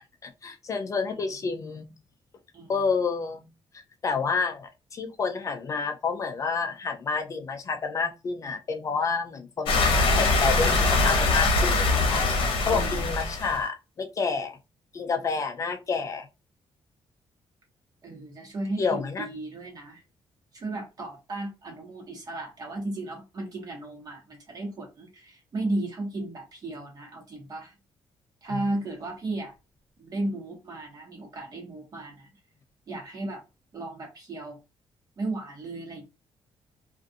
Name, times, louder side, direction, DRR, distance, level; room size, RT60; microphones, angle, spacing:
voice 1, 0.2-1.9 2.7-3.4 3.7-14.6 14.9-16.3 18.8-19.3 28.5-28.6, left 5 dB, 35° left, 0.3 m, -29 dB
sound 1, 9.7-13.6, left 3 dB, 60° left, 0.8 m, -23 dB
voice 2, 12.7-13.0 18.0-20.0 20.5-27.7 28.4-29.5 30.0-32.3 32.9-33.4 33.7-34.6 35.2-36.0, right 2 dB, 40° right, 1.1 m, -34 dB
2.5 x 2.3 x 2.6 m
cardioid pair, 155°, 10 cm